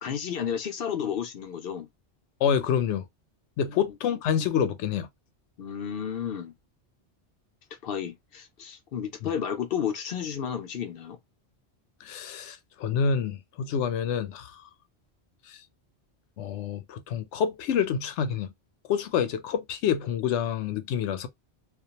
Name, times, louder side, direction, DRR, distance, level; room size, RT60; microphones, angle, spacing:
voice 1, 0.0-1.9 5.6-6.5 7.8-11.2, left 8 dB, 65° left, 0.7 m, -32 dB
voice 2, 2.4-3.1 3.6-5.1 12.0-14.6 15.5-15.6 16.4-18.5 18.9-21.3, left 7 dB, 90° left, 0.9 m, -27 dB
2.4 x 2.2 x 2.7 m
omnidirectional pair, 1.1 m